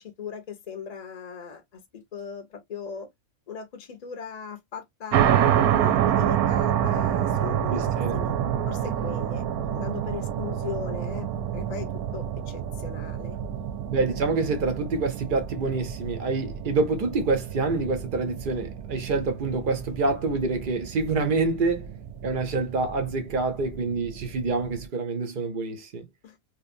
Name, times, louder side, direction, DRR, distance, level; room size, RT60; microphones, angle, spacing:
voice 1, 0.0-3.1 3.5-8.3 8.6-11.3 11.5-13.4 26.2-26.4, left 7 dB, 50° left, 0.5 m, -38 dB
sound 1, 5.1-24.8, right 10 dB, 85° right, 1.0 m, -28 dB
voice 2, 7.7-8.1 13.9-21.9 22.2-26.1, right 3 dB, 60° right, 0.5 m, -27 dB
2.9 x 2.1 x 2.5 m
omnidirectional pair, 1.5 m